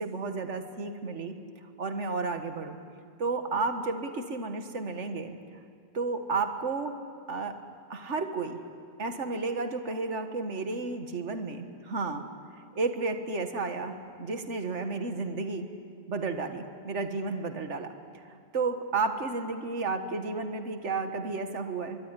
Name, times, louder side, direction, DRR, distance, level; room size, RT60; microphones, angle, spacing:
voice 1, 0.0-1.4 1.8-2.8 3.2-5.3 5.9-6.9 7.3-7.6 7.9-8.6 9.0-12.2 12.8-15.7 16.1-17.9 18.5-22.0, right 3 dB, 85° right, 7 dB, 1.9 m, -32 dB
24.0 x 23.0 x 9.8 m, 2.2 s
omnidirectional pair, 1.2 m